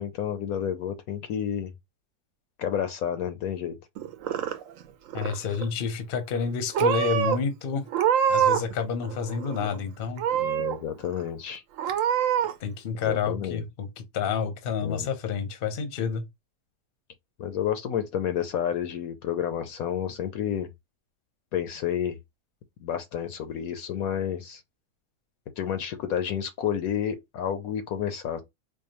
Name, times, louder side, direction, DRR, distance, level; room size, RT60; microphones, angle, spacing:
voice 1, 0.0-1.7 2.6-3.8 10.4-11.6 13.0-13.6 14.8-15.1 17.4-20.7 21.5-22.2 22.8-24.6 25.6-28.4, left 9 dB, 70° left, 1.0 m, -30 dB
Purr / Meow, 4.0-4.8 5.1-5.7 6.3-6.5 6.7-7.4 7.9-8.7 9.0-9.8 10.2-10.8 11.2-11.3 11.8-12.5, right 9 dB, 70° right, 0.8 m, -25 dB
voice 2, 5.1-7.9 8.3-10.2 12.6-16.2, left 6 dB, 45° left, 0.7 m, -29 dB
4.6 x 2.3 x 2.9 m
omnidirectional pair, 1.7 m